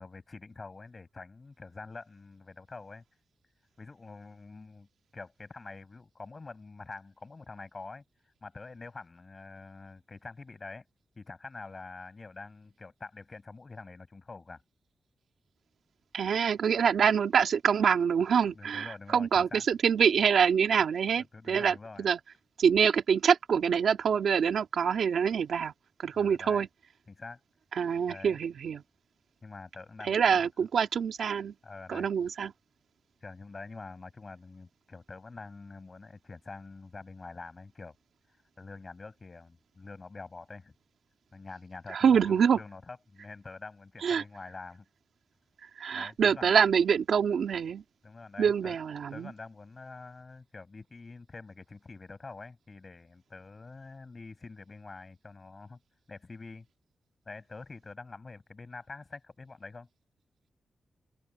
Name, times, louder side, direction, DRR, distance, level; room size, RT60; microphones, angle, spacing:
voice 1, 0.0-3.0 3.8-4.9 5.1-8.0 8.4-10.8 11.2-14.6 18.5-19.6 21.2-22.1 26.1-26.6 27.1-27.4 28.1-28.4 29.4-30.5 31.6-32.1 33.2-37.9 38.6-40.7 41.3-44.8 45.9-46.5 48.0-48.8 49.1-55.8 56.1-56.7 57.3-59.9, left 3 dB, 40° left, 8.0 m, -46 dB
voice 2, 16.1-22.2 22.6-25.7 26.0-26.7 27.7-28.8 30.0-31.5 31.9-32.5 41.9-42.6 44.0-44.2 45.8-47.8 48.4-49.3, right 7 dB, 85° right, 2.0 m, -25 dB
cardioid pair, 85°, 0 cm